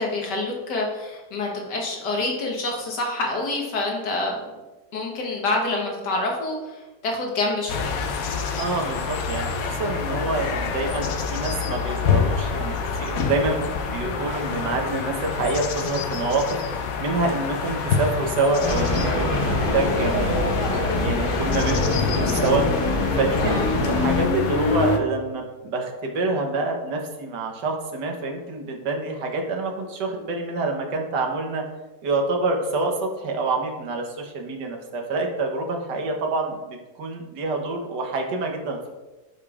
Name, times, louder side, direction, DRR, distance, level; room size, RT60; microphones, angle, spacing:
voice 1, 0.0-4.3 4.9-7.9 23.4-23.7, left 2 dB, 80° left, 0 dB, 1.7 m, -27 dB
sound 1, 7.7-25.0, left 5 dB, 65° left, 1.1 m, -26 dB
voice 2, 8.6-16.4 16.7-19.4 19.7-20.5 21.0-22.7 23.1-31.6 32.0-38.9, right 3 dB, 85° right, 2 dB, 1.6 m, -27 dB
sound 2, 18.6-24.2, left 1 dB, 35° left, 1.0 m, -25 dB
12.0 x 5.0 x 2.4 m, 1.2 s
omnidirectional pair, 1.8 m